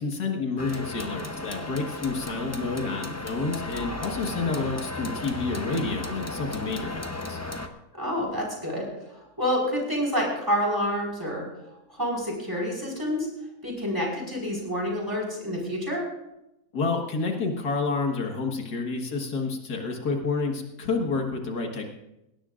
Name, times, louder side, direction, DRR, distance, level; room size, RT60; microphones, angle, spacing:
voice 1, 0.0-7.4 16.7-21.9, left 4 dB, 85° left, 2 dB, 2.2 m, -29 dB
sound 1, 0.6-7.7, left 2 dB, 15° left, 0.6 m, -35 dB
voice 2, 7.9-11.4 11.9-13.3 13.6-16.0, equal, 15° right, -2 dB, 4.9 m, -28 dB
20.0 x 17.0 x 2.5 m, 0.89 s
omnidirectional pair, 1.6 m